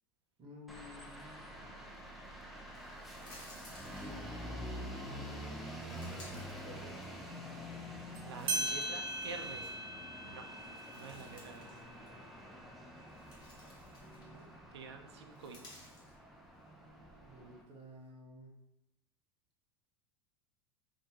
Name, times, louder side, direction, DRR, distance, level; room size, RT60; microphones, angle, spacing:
voice 1, 0.4-1.7 4.5-7.0 14.0-14.6 17.2-18.7, equal, 40° right, -3 dB, 1.2 m, -54 dB
sound 1, 0.7-17.6, equal, ahead, 0.6 m, -47 dB
sound 2, 2.7-4.7 5.4-7.4 7.8-10.0 10.4-11.8 12.1-12.2 12.8-14.5 15.2-16.1, left 1 dB, 30° left, 1.4 m, -58 dB
sound 3, 8.1-8.2 8.5-13.6, right 1 dB, 65° right, 0.8 m, -41 dB
voice 2, 8.2-9.7 10.2-10.5 10.9-11.8 14.7-15.9, right 5 dB, 85° right, 6 dB, 0.5 m, -48 dB
3.6 x 2.7 x 2.9 m, 0.88 s
hypercardioid pair, 100°, 14 cm